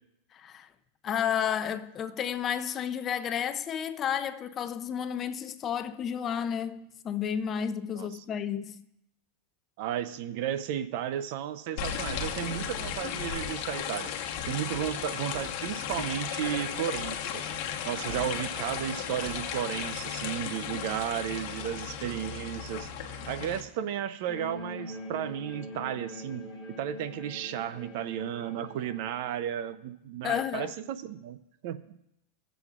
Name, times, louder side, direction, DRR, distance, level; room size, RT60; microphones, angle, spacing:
voice 1, 0.3-0.7 1.0-8.8 30.2-30.7, left 8 dB, 30° left, 0.4 m, -31 dB
voice 2, 9.8-17.3 17.8-22.9 23.3-26.5 26.8-31.4 31.6-31.8, right 10 dB, 60° right, 0.5 m, -34 dB
sound 1, 11.8-23.6, left 8 dB, 55° left, 1.1 m, -35 dB
sound 2, 14.4-14.5 14.7-15.0 15.3-16.1 16.4-16.6 16.9-17.2 17.5-17.7 18.1-18.3 18.7-18.9 19.2-19.5 19.8-20.0, right 3 dB, 15° right, 2.6 m, -46 dB
sound 3, 24.3-29.4, left 1 dB, 10° left, 2.5 m, -43 dB
17.5 x 7.0 x 2.4 m
supercardioid pair, 140°, 0 cm